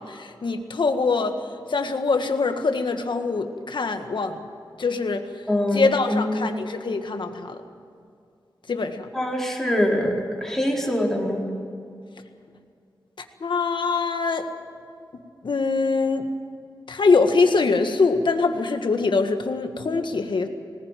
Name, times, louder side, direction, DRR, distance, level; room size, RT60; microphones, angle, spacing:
voice 1, 0.0-1.4 1.7-4.4 4.8-5.3 5.7-7.6 8.7-9.1 13.4-14.5 15.4-16.3 16.9-20.5, left 4 dB, 70° left, 6 dB, 1.8 m, -23 dB
voice 2, 5.5-6.7 9.1-11.4, left 1 dB, 5° left, -2 dB, 4.5 m, -24 dB
20.5 x 18.5 x 9.2 m, 2.3 s
wide cardioid pair, 85°, 8 cm